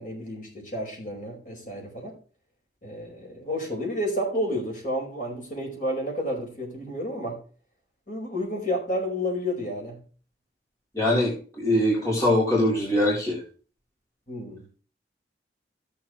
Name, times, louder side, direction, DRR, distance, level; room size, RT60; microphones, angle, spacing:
voice 1, 0.0-2.2 2.8-7.4 8.1-10.0 14.3-14.6, equal, 45° left, 0 dB, 5.1 m, -31 dB
voice 2, 10.9-13.4, left 1 dB, 15° left, -5 dB, 3.9 m, -22 dB
17.0 x 7.4 x 3.2 m, 0.39 s
head